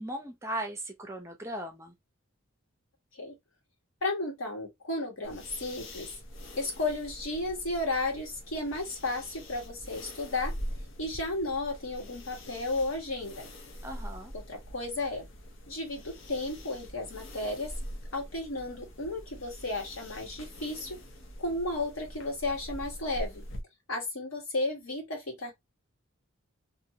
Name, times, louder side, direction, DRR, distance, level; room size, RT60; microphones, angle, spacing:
voice 1, 0.0-1.9 13.8-14.3, right 1 dB, 15° right, 0.6 m, -37 dB
voice 2, 4.0-6.1 6.6-10.5 11.0-13.4 14.5-15.2 15.7-17.7 18.1-21.0 21.4-23.4 23.9-25.5, left 2 dB, 85° left, 1.4 m, -33 dB
sound 1, 5.2-23.6, equal, 65° left, 0.7 m, -44 dB
2.6 x 2.6 x 2.7 m
head